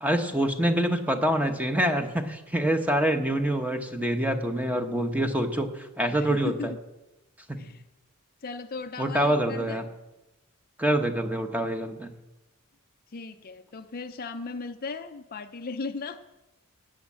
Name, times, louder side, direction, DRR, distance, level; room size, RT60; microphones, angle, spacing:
voice 1, 0.0-6.7 7.5-7.6 9.0-9.8 10.8-12.1, right 1 dB, 5° right, 6 dB, 1.0 m, -26 dB
voice 2, 6.1-6.8 7.6-7.8 8.4-9.8 13.1-16.2, left 4 dB, 40° left, 8 dB, 0.5 m, -37 dB
18.5 x 6.5 x 7.4 m, 1.0 s
head